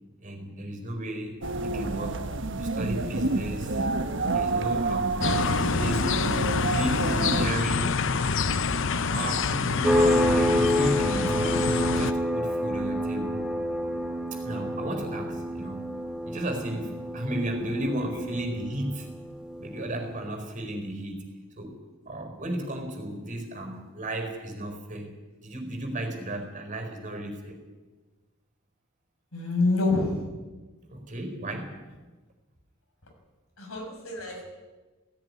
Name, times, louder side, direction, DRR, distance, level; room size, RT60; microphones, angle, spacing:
voice 1, 0.2-2.3 2.6-3.9 4.3-5.3 5.7-8.1 8.9-13.5 14.3-15.9 16.2-19.1 19.6-21.8 22.1-25.1 25.4-27.5 30.9-31.8, right 1 dB, 35° right, 5 dB, 4.2 m, -34 dB
sound 1, 1.4-7.5, right 3 dB, 60° right, 1.3 m, -28 dB
sound 2, 5.2-12.1, left 4 dB, 60° left, 0.8 m, -27 dB
sound 3, 9.8-20.2, equal, 5° right, 1.4 m, -28 dB
voice 2, 29.3-30.2 33.6-34.4, left 3 dB, 80° left, 1 dB, 6.6 m, -26 dB
17.0 x 17.0 x 9.6 m, 1.2 s
head